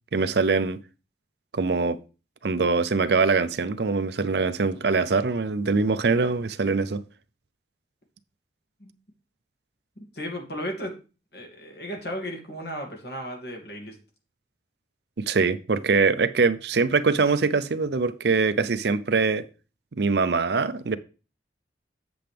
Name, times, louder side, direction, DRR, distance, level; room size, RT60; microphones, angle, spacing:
voice 1, 0.1-0.8 1.5-2.0 2.4-7.0 15.2-19.5 19.9-21.0, right 4 dB, 65° right, 0.6 m, -23 dB
voice 2, 10.0-10.9 11.3-14.0, equal, 65° left, 2.4 m, -35 dB
7.8 x 7.7 x 3.4 m
head